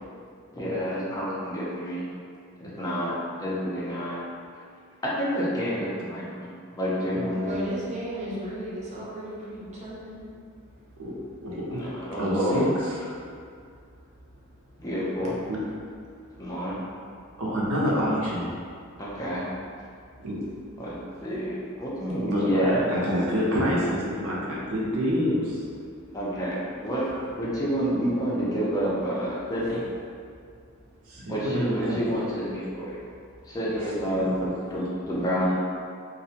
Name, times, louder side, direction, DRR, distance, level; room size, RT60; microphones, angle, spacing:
voice 1, 0.5-2.0 2.6-4.2 5.0-7.6 11.7-12.7 14.8-15.3 16.4-16.8 19.0-19.5 20.8-22.8 26.1-27.1 27.4-29.8 31.3-33.0 33.5-35.5, equal, 15° left, -7 dB, 0.4 m, -28 dB
voice 2, 7.4-10.1, right 1 dB, 35° right, -7 dB, 0.6 m, -35 dB
voice 3, 11.4-11.8 12.2-13.0 15.2-15.6 17.4-18.5 20.2-20.4 22.2-25.6 31.1-32.1 34.0-34.2, equal, 80° right, -5 dB, 0.6 m, -27 dB
2.4 x 2.1 x 2.7 m, 2.2 s
head